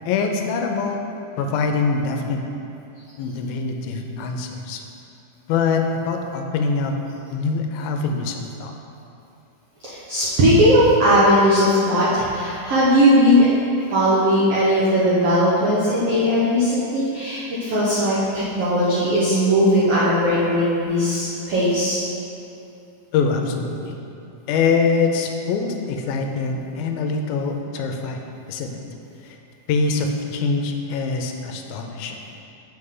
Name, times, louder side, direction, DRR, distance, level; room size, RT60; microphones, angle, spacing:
voice 1, 0.1-1.0 1.4-2.4 3.2-4.8 5.5-7.0 7.3-8.7 23.1-23.9 24.5-28.2 28.5-28.8 29.2-29.4 29.7-32.2, left 4 dB, 85° left, 3 dB, 2.4 m, -24 dB
voice 2, 9.8-13.5 13.9-22.0, equal, 75° right, -9 dB, 1.4 m, -18 dB
7.8 x 6.0 x 3.7 m, 2.7 s
omnidirectional pair, 4.1 m